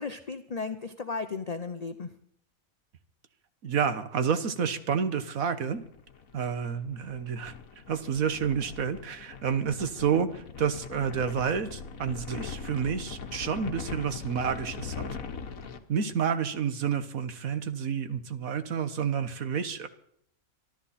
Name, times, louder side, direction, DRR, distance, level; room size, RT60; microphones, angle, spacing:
voice 1, 0.0-2.1, left 4 dB, 35° left, 8 dB, 0.7 m, -35 dB
voice 2, 3.6-5.8 6.3-7.5 7.9-15.1 15.9-19.9, right 7 dB, 75° right, 11 dB, 1.6 m, -29 dB
sound 1, 5.8-15.8, left 5 dB, 75° left, 1.6 m, -41 dB
24.5 x 12.5 x 4.3 m, 0.69 s
omnidirectional pair, 1.5 m